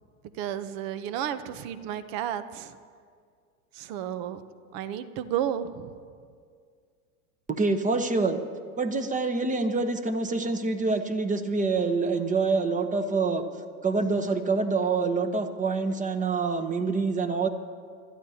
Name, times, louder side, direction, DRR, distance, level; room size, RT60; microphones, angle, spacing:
voice 1, 0.4-2.8 3.7-4.4 4.7-5.9, right 10 dB, 50° right, 12 dB, 0.9 m, -32 dB
voice 2, 7.5-8.4 8.8-13.4 13.8-17.5, right 4 dB, 20° right, 8 dB, 1.0 m, -26 dB
25.0 x 12.5 x 2.8 m, 2.1 s
hypercardioid pair, 100°, 42 cm